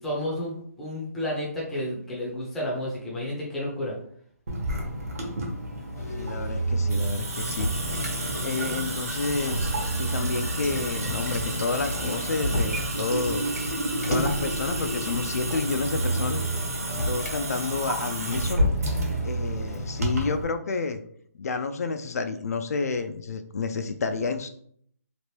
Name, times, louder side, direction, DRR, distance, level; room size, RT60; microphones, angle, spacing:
voice 1, 0.0-4.0, left 1 dB, 5° left, -5 dB, 0.6 m, -31 dB
Water tap faucet / Sink (filling or washing) / Drip, 4.5-20.4, right 1 dB, 65° right, 1.1 m, -30 dB
Motor vehicle (road), 6.0-8.1 9.3-12.9 14.0-17.4 18.2-20.2, right 2 dB, 85° left, 1.1 m, -31 dB
voice 2, 6.2-7.7 8.4-9.7 10.0-13.5 14.1-16.4 17.1-18.7 19.2-21.0 21.3-24.5, left 4 dB, 65° left, 8 dB, 0.3 m, -30 dB
2.9 x 2.5 x 3.2 m, 0.64 s
hypercardioid pair, 165°, 9 cm